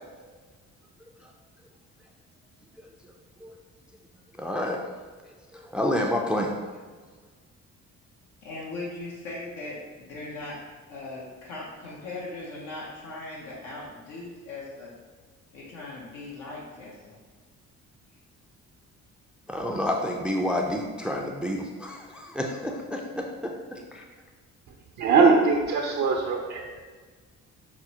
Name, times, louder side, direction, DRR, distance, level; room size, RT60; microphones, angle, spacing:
voice 1, 4.4-4.8 5.5-6.6 19.5-24.0, left 1 dB, 5° right, 1 dB, 0.3 m, -29 dB
voice 2, 8.4-10.6 10.9-14.9 15.5-17.2, left 2 dB, 85° left, -5 dB, 0.8 m, -39 dB
voice 3, 25.0-26.8, right 4 dB, 65° right, 0 dB, 0.5 m, -21 dB
5.8 x 2.0 x 2.8 m, 1.5 s
cardioid pair, 90°, 30 cm